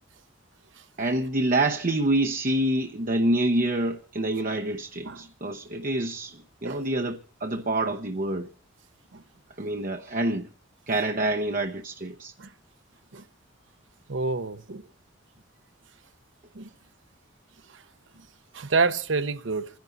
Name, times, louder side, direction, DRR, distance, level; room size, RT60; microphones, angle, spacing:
voice 1, 1.0-8.5 9.6-10.5 10.9-12.3, right 1 dB, 45° right, 0.8 m, -27 dB
voice 2, 14.1-14.9 16.5-16.7 18.5-19.7, right 4 dB, 75° right, 0.9 m, -28 dB
28.0 x 10.5 x 3.9 m
head